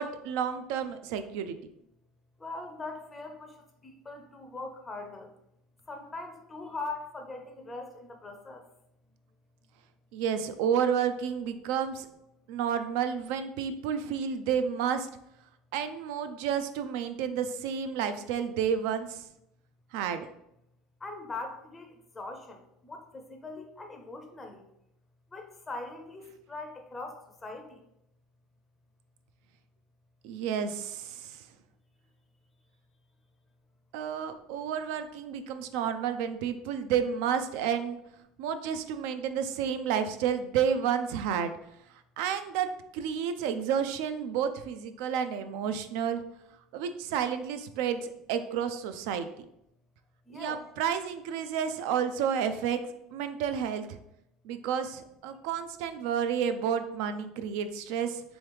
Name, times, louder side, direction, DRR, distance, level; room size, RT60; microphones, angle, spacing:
voice 1, 0.0-1.5 10.1-12.1 12.5-15.1 15.7-19.3 19.9-20.3 30.2-31.4 33.9-38.0 38.4-41.5 42.2-46.2 46.7-49.3 50.3-52.8 53.1-54.0 54.4-58.2, right 8 dB, 70° right, 9 dB, 0.4 m, -30 dB
voice 2, 2.4-3.5 3.8-5.3 5.9-8.6 21.0-24.6 25.3-27.8 50.3-50.6, left 3 dB, 15° left, 3 dB, 0.5 m, -41 dB
3.6 x 3.0 x 3.4 m, 0.80 s
cardioid pair, 140°, 0 cm